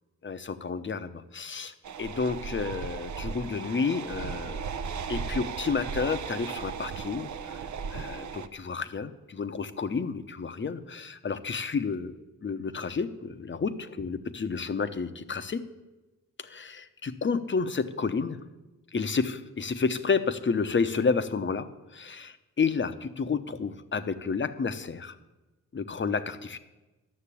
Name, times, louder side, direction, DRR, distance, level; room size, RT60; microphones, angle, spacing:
voice 1, 0.2-1.7 2.0-4.6 5.1-7.6 7.9-15.7 16.4-18.4 18.9-21.7 21.9-25.2 25.7-26.6, left 5 dB, 35° left, 10 dB, 0.8 m, -30 dB
sound 1, 1.8-8.5, right 6 dB, 55° right, 0.7 m, -36 dB
12.0 x 6.5 x 8.5 m, 1.1 s
cardioid pair, 70°, 34 cm